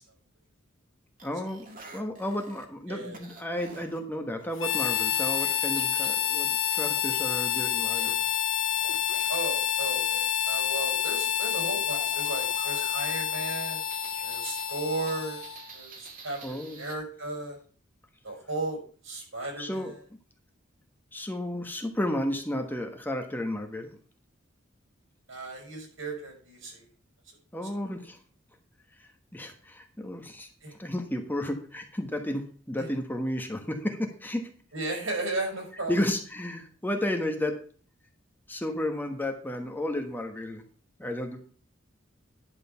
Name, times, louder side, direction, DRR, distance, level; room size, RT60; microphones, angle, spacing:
voice 1, 1.2-1.7 1.9-8.2 16.4-16.8 19.6-19.9 21.1-24.0 27.5-28.2 29.0-34.5 35.9-37.6 38.5-40.6 41.0-41.5, left 1 dB, 10° left, 4 dB, 1.3 m, -32 dB
sound 1, 1.2-2.6 3.1-4.0 4.4-6.1 7.1-9.3 11.9-16.9, right 3 dB, 45° right, 2.0 m, -48 dB
Harmonica, 4.6-15.7, left 10 dB, 70° left, 0.9 m, -28 dB
voice 2, 9.3-13.8 14.2-15.4 15.7-16.4 16.8-17.6 18.2-18.8 19.0-19.9 25.3-26.8 30.6-30.7 32.8-32.9 34.7-36.0, right 2 dB, 80° right, 0 dB, 5.3 m, -35 dB
11.0 x 5.0 x 6.9 m, 0.42 s
head